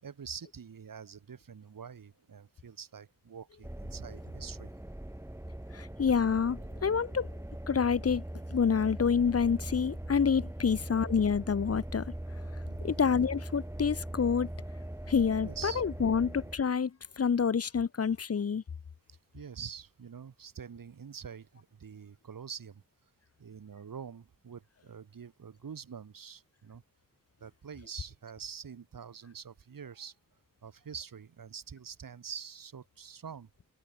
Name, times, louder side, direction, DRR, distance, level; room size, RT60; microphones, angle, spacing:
voice 1, 0.0-4.7 10.7-10.9 12.6-13.0 15.4-16.1 19.1-22.8 23.4-26.8 27.4-30.1 30.6-33.5, right 7 dB, 85° right, 6.2 m, -46 dB
sound 1, 3.6-16.6, right 1 dB, 10° right, 4.0 m, -41 dB
voice 2, 5.7-7.3 7.7-8.2 8.5-12.1 12.8-14.5 15.1-18.6, left 6 dB, 50° left, 0.9 m, -28 dB
wide cardioid pair, 110°, 33 cm